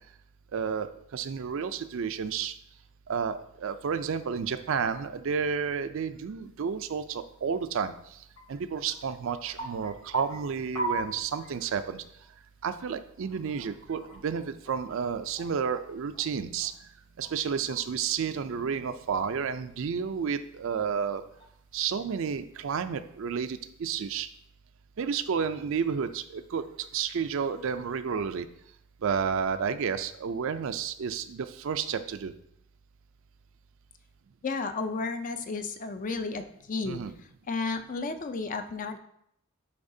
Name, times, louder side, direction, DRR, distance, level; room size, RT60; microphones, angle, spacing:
voice 1, 0.5-2.5 3.1-7.9 8.5-12.0 12.6-16.7 17.2-21.2 21.7-24.3 25.0-28.5 29.0-32.3 36.8-37.2, right 6 dB, 60° right, 11 dB, 0.4 m, -31 dB
sound 1, 7.4-7.5 7.8-7.9 8.1-8.4 8.7-11.8 12.2-12.3 12.6-16.2 16.6-18.2 18.6-19.6 20.0-22.4 22.9-23.0 23.9-24.3, right 2 dB, 20° left, 0.8 m, -41 dB
voice 2, 34.4-37.0 37.5-39.0, left 4 dB, 35° left, 8 dB, 0.4 m, -32 dB
8.5 x 4.8 x 2.7 m, 0.73 s
head